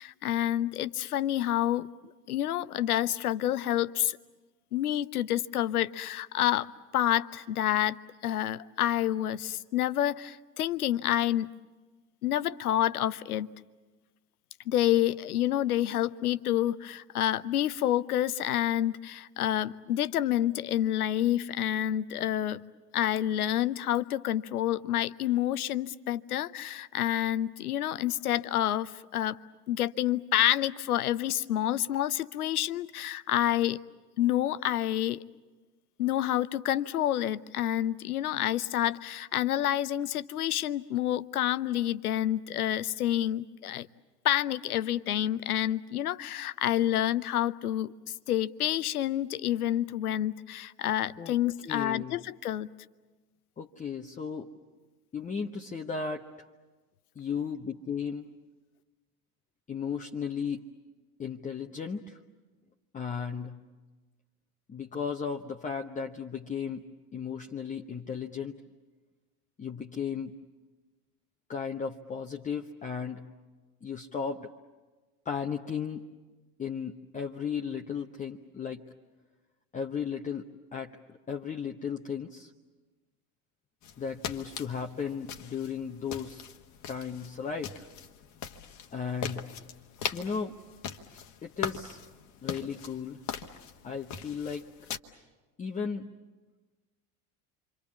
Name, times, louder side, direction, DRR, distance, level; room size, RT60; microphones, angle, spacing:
voice 1, 0.0-1.9 2.3-4.2 4.7-6.7 6.9-8.0 8.2-11.5 12.2-13.5 14.7-22.6 22.9-29.4 29.7-33.8 34.2-35.2 36.0-43.9 44.2-47.9 48.3-52.7, left 12 dB, 70° left, 17 dB, 0.8 m, -28 dB
voice 2, 51.7-52.2 53.6-54.5 55.1-56.3 57.2-58.3 59.7-60.6 61.2-62.2 62.9-63.6 64.7-66.8 67.1-68.6 69.6-70.3 71.5-73.3 73.8-74.5 75.2-76.0 76.6-78.9 79.7-82.5 84.0-86.4 86.9-87.9 88.9-89.6 90.1-90.6 91.4-92.0 92.4-93.2 93.8-94.7 95.6-96.1, left 6 dB, 15° left, 3 dB, 0.9 m, -35 dB
sound 1, 83.8-95.0, left 8 dB, 40° left, 1.3 m, -41 dB
28.0 x 25.5 x 7.2 m, 1.3 s
figure-of-eight pair, 75°, 46 cm